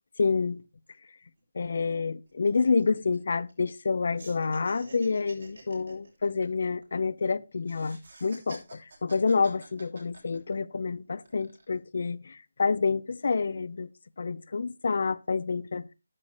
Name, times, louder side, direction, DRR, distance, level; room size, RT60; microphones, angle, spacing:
voice 1, 0.2-0.6 1.5-13.9 14.2-15.9, left 4 dB, 60° left, 0.6 m, -28 dB
sound 1, 1.4-1.5 1.7-1.9 2.3-3.9 4.2-7.3 7.6-10.8 11.2-11.8, right 3 dB, 75° right, 6.6 m, -50 dB
12.0 x 11.5 x 3.1 m
hypercardioid pair, 165°, 0 cm